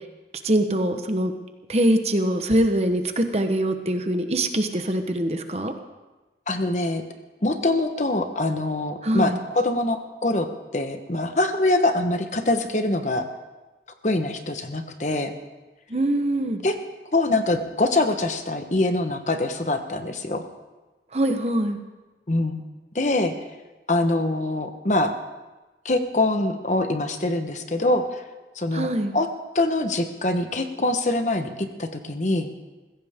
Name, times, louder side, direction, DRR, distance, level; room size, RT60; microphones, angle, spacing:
voice 1, 0.4-1.3 1.7-5.7 9.0-9.4 15.9-16.6 21.1-21.8 28.7-29.1, right 1 dB, 35° right, 6 dB, 1.1 m, -23 dB
voice 2, 6.5-7.0 7.4-10.5 10.7-13.2 14.0-15.3 16.6-16.7 17.1-20.4 22.3-22.6 22.9-23.3 23.9-25.1 25.8-28.2 28.5-28.9 29.1-29.3 29.5-31.5 31.8-32.5, left 2 dB, 40° left, 7 dB, 1.1 m, -24 dB
21.0 x 15.5 x 3.6 m, 1.2 s
head